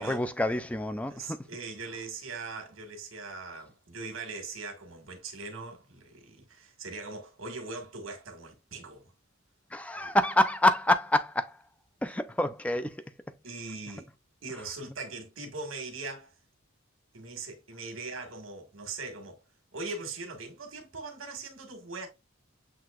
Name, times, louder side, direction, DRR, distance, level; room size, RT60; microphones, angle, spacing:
voice 1, 0.0-1.4 9.7-11.5 12.0-13.0, left 1 dB, 5° left, 0.4 m, -27 dB
voice 2, 1.1-9.1 9.9-10.1 13.4-14.1 14.4-16.3 17.1-19.4 19.7-22.1, right 3 dB, 75° right, 1.7 m, -40 dB
7.6 x 2.8 x 2.4 m
head